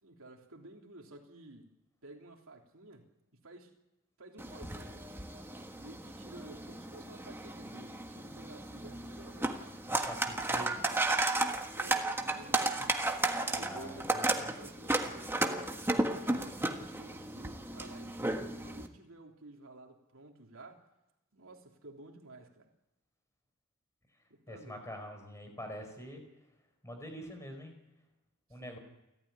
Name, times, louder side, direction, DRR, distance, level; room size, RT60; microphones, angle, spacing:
voice 1, 0.0-1.7 2.0-3.8 4.2-5.1 5.8-9.6 10.5-10.8 11.7-13.1 13.4-20.8 21.3-22.7 24.3-24.9 28.5-28.8, right 2 dB, 65° right, 1 dB, 3.3 m, -53 dB
sound 1, 4.4-18.9, right 2 dB, 10° right, 1.5 m, -34 dB
voice 2, 9.9-10.8 13.5-14.5 24.5-26.2 26.8-27.7 28.5-28.8, equal, 15° left, 5 dB, 4.8 m, -45 dB
29.0 x 13.0 x 9.9 m, 0.95 s
head